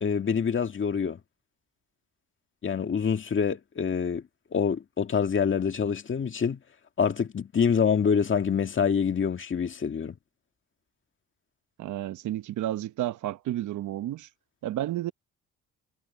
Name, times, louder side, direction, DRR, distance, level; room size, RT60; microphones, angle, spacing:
voice 1, 0.0-1.2 2.6-4.2 4.5-6.6 7.0-10.2, left 6 dB, 40° left, 2.1 m, -26 dB
voice 2, 11.8-14.3 14.6-15.1, right 13 dB, 75° right, 0.9 m, -31 dB
cardioid pair, 90°, 30 cm